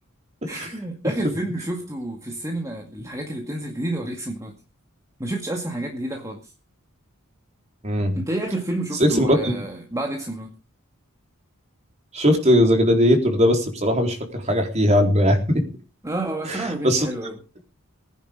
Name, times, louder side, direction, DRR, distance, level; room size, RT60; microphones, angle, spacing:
voice 1, 0.5-4.5 5.2-6.5 8.1-10.6 16.0-17.4, right 1 dB, 15° right, 2 dB, 2.1 m, -30 dB
voice 2, 9.0-9.5 12.1-15.6 16.5-17.1, equal, 30° right, 3 dB, 3.9 m, -19 dB
20.0 x 10.5 x 5.2 m, 0.33 s
head